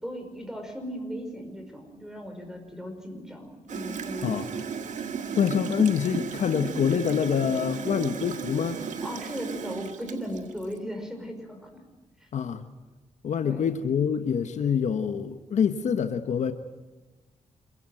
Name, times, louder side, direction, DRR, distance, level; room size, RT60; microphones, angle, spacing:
voice 1, 0.0-4.4 5.3-5.5 9.0-11.8 12.2-12.3 13.4-13.8, equal, 5° right, 4 dB, 5.2 m, -37 dB
Gurgling / Toilet flush, 3.7-10.8, right 6 dB, 80° right, 1.8 m, -35 dB
voice 2, 5.4-8.8 12.3-12.6 13.2-16.5, left 7 dB, 75° left, 8 dB, 1.3 m, -26 dB
27.0 x 16.5 x 9.2 m, 1.2 s
cardioid pair, 85°, 12 cm